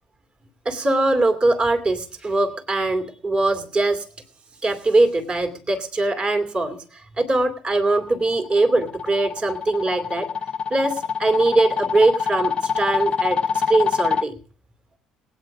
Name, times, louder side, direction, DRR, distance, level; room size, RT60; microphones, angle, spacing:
voice 1, 0.6-4.1 4.6-10.3 10.7-14.3, right 2 dB, 40° right, 5 dB, 2.5 m, -21 dB
sound 1, 8.1-14.2, left 7 dB, 40° left, 0.6 m, -25 dB
18.5 x 9.3 x 5.3 m, 0.42 s
hypercardioid pair, 55°, 3 cm